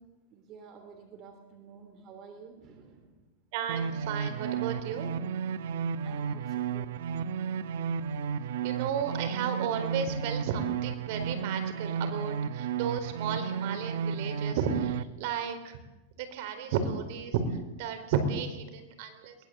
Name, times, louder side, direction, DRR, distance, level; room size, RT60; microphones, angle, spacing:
voice 1, 0.3-3.3 6.0-7.0, right 6 dB, 35° right, 5 dB, 3.3 m, -51 dB
voice 2, 3.5-5.1 8.6-15.8 16.2-19.4, right 6 dB, 55° right, 8 dB, 4.3 m, -33 dB
sound 1, 3.7-15.0, right 7 dB, 75° right, 0.9 m, -33 dB
23.0 x 20.0 x 8.0 m, 1.0 s
supercardioid pair, 150°, 0 cm